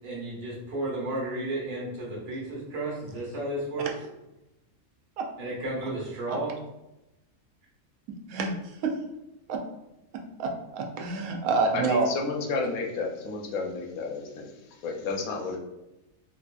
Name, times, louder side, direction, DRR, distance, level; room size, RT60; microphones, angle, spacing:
voice 1, 0.0-3.9 5.4-6.5, right 2 dB, 50° right, -4 dB, 1.3 m, -33 dB
voice 2, 8.3-8.9 9.5-9.6 10.4-12.1, right 4 dB, 80° right, 2 dB, 1.0 m, -28 dB
voice 3, 11.7-15.6, left 3 dB, 80° left, 1 dB, 1.1 m, -31 dB
4.2 x 2.6 x 2.3 m, 0.94 s
omnidirectional pair, 1.5 m